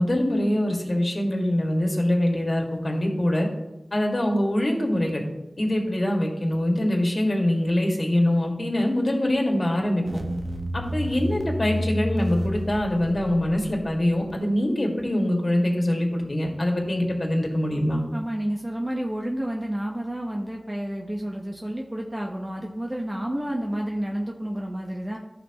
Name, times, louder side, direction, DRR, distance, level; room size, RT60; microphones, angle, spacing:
voice 1, 0.0-3.5 3.9-5.2 5.6-10.0 10.7-18.0, left 1 dB, 55° left, 0 dB, 2.0 m, -24 dB
sound 1, 10.1-14.3, equal, 40° right, 1.0 m, -30 dB
voice 2, 18.1-25.2, right 1 dB, 25° right, -1 dB, 1.1 m, -30 dB
14.5 x 5.5 x 3.0 m, 1.0 s
wide cardioid pair, 50°, 0 cm